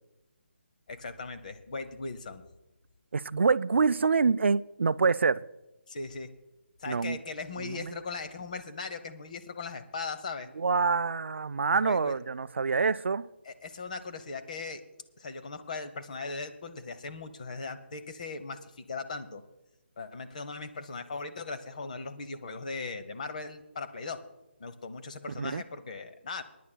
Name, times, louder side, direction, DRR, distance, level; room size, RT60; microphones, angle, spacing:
voice 1, 0.9-2.4 5.9-6.3 6.8-10.5 11.7-12.2 13.4-14.8 15.2-19.4 20.0-24.2 24.6-26.4, left 4 dB, 40° left, 0.8 m, -39 dB
voice 2, 3.1-5.5 6.9-7.2 7.6-7.9 10.6-13.3 25.4-25.6, right 4 dB, 80° right, 0.4 m, -26 dB
26.5 x 10.0 x 2.2 m
hypercardioid pair, 170°, 6 cm